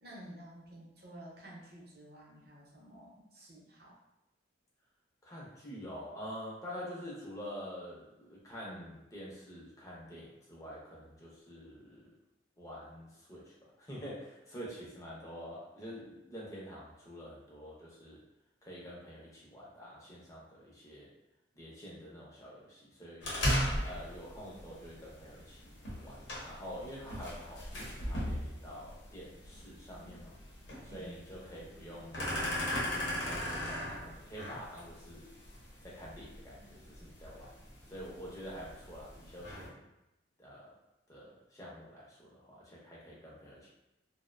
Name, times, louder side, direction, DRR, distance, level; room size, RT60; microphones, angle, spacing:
voice 1, 0.0-4.0 30.0-30.2 30.9-31.1, right 1 dB, 55° right, -4 dB, 0.7 m, -52 dB
voice 2, 5.2-12.1 12.6-18.2 18.6-21.1 21.5-23.3 23.8-30.3 30.8-35.3 35.8-37.5 37.9-39.9 40.4-40.7 41.1-43.7, equal, 15° left, -5 dB, 0.6 m, -47 dB
sound 1, 23.2-39.7, equal, 75° left, 0.7 m, -38 dB
2.5 x 2.0 x 2.4 m, 0.91 s
head